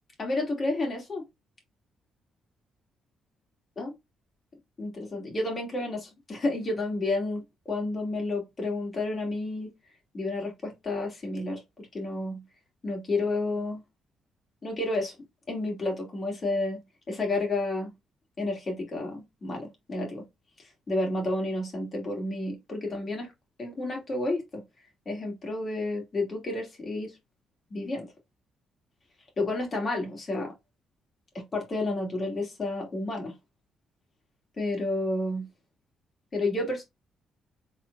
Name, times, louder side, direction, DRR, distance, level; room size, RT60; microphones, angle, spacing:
voice 1, 0.2-1.2 3.8-3.9 4.8-9.7 10.1-12.4 12.8-13.8 14.6-15.2 15.5-16.8 17.1-17.9 18.4-20.2 20.9-23.3 23.6-24.6 25.1-27.1 27.7-28.1 29.4-30.5 31.3-33.3 34.6-35.5 36.3-36.8, left 2 dB, 40° left, 2.6 m, -31 dB
4.4 x 3.9 x 2.6 m
cardioid pair, 90°, 0 cm